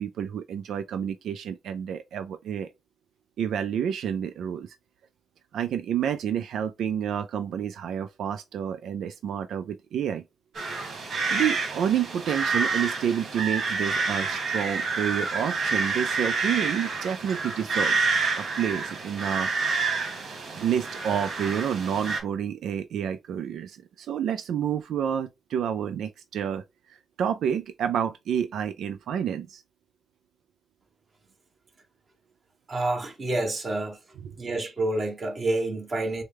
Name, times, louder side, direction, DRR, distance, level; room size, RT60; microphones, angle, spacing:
voice 1, 0.0-2.7 3.4-4.8 5.5-10.2 11.3-18.1 18.3-19.5 20.6-29.6 34.2-34.3, right 9 dB, 90° right, 0.4 m, -29 dB
sound 1, 10.5-22.2, right 4 dB, 70° right, 1.9 m, -28 dB
voice 2, 32.7-34.0 34.4-36.2, right 2 dB, 35° right, 1.4 m, -28 dB
6.4 x 2.2 x 3.4 m
cardioid pair, 125°, 0 cm